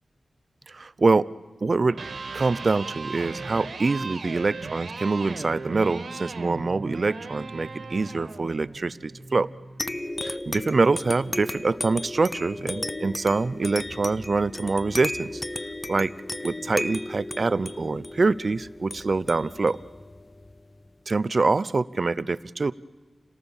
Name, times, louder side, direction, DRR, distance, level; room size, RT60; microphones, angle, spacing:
voice 1, 0.7-1.3 1.6-2.0 2.3-9.5 10.2-15.4 15.9-16.1 16.4-19.8 21.1-22.7, right 3 dB, 50° right, 17 dB, 0.6 m, -25 dB
Electric guitar, 1.8-9.9, right 3 dB, 70° right, 1.9 m, -37 dB
sound 1, 9.8-20.9, left 1 dB, 20° left, 0.7 m, -35 dB
28.5 x 18.0 x 7.2 m, 1.3 s
wide cardioid pair, 95°, 0 cm